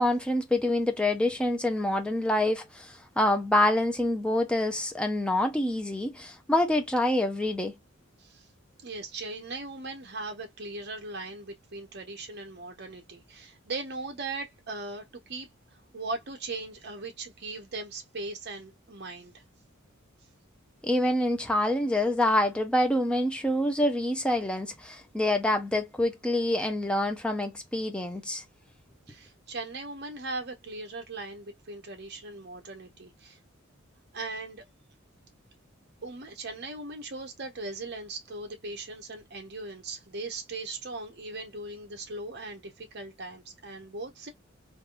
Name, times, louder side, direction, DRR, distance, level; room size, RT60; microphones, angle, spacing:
voice 1, 0.0-7.7 20.8-28.4, left 1 dB, 5° left, 0.6 m, -26 dB
voice 2, 8.8-15.5 15.9-19.4 29.1-33.4 34.1-34.6 36.0-44.3, right 3 dB, 50° right, 0.9 m, -39 dB
3.4 x 2.6 x 2.4 m
head